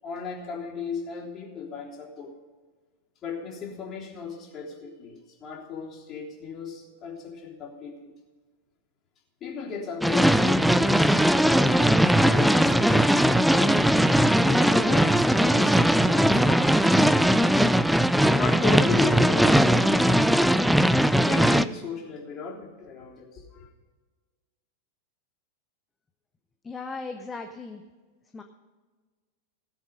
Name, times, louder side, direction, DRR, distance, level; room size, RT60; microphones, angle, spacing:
voice 1, 0.0-2.3 3.2-8.1 9.4-17.4 18.2-20.7 21.2-23.7, left 5 dB, 30° left, -3 dB, 3.5 m, -35 dB
sound 1, 10.0-21.6, equal, ahead, 0.4 m, -20 dB
voice 2, 26.6-27.8 28.3-28.4, left 4 dB, 15° left, 6 dB, 0.8 m, -37 dB
18.0 x 7.2 x 5.3 m, 1.4 s
figure-of-eight pair, 90°, 0 cm